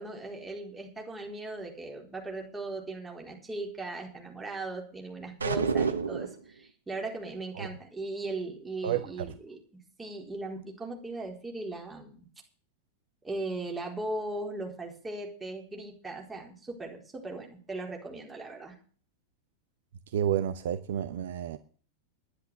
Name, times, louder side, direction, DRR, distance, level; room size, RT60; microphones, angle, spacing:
voice 1, 0.0-9.6 10.0-12.3 13.2-18.7, right 2 dB, 15° right, 1 dB, 4.3 m, -38 dB
sound 1, 5.4-6.4, right 5 dB, 75° right, 1.2 m, -28 dB
voice 2, 20.1-21.6, right 10 dB, 55° right, 11 dB, 0.8 m, -30 dB
11.5 x 10.5 x 6.8 m, 0.42 s
figure-of-eight pair, 90°, 0 cm